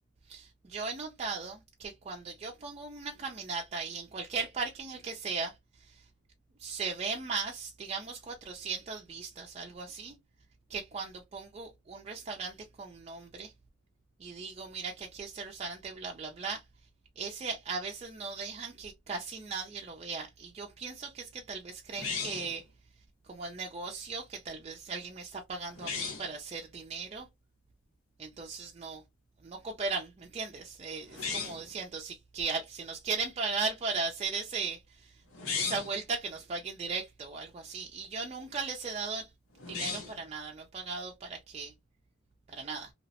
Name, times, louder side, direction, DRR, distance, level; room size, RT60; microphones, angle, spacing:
voice 1, 0.3-6.0 6.6-10.2 10.7-13.5 14.2-16.6 17.2-22.6 23.3-27.3 28.2-29.0 29.4-35.2 35.5-39.3 39.7-41.7 42.5-42.9, right 4 dB, 30° right, 0.4 m, -37 dB
sound 1, 22.0-22.6 25.7-26.3 31.1-31.7 35.3-36.0 39.6-40.2, left 5 dB, 85° left, 1.0 m, -35 dB
2.7 x 2.0 x 2.7 m
head